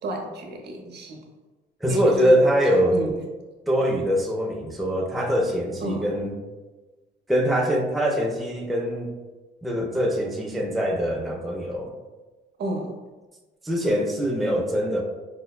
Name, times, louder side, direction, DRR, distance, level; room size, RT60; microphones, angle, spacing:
voice 1, 0.0-1.2 1.9-2.4 2.6-3.1 5.8-6.1 12.6-13.0, right 1 dB, 55° right, 2 dB, 0.6 m, -31 dB
voice 2, 1.8-3.0 3.7-6.3 7.3-9.2 9.6-12.0 13.6-15.0, equal, ahead, 0 dB, 0.4 m, -23 dB
4.7 x 2.0 x 2.2 m, 1.2 s
cardioid pair, 90°, 20 cm